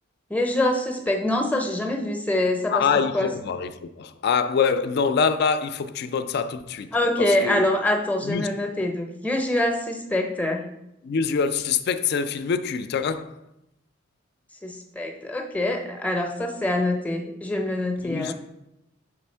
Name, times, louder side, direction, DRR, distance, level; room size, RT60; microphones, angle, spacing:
voice 1, 0.3-2.9 3.1-3.3 6.9-10.7 14.6-18.3, left 1 dB, 5° left, 0.6 m, -25 dB
voice 2, 2.7-6.9 7.2-7.6 8.2-8.5 11.0-13.3 18.0-18.3, left 6 dB, 55° left, 0.3 m, -25 dB
6.4 x 3.4 x 4.4 m
head